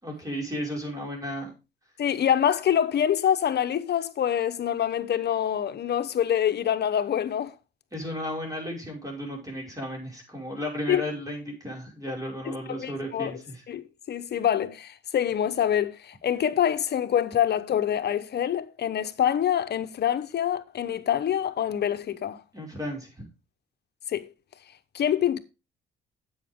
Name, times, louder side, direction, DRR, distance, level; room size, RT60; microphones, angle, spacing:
voice 1, 0.0-1.5 7.9-13.6 22.5-23.1, equal, 15° right, 5.7 m, -34 dB
voice 2, 2.0-7.5 10.9-11.0 12.4-13.3 13.7-22.4 24.1-24.3 24.9-25.4, left 9 dB, 55° left, 0.9 m, -26 dB
10.0 x 8.0 x 3.7 m
cardioid pair, 90°, 20 cm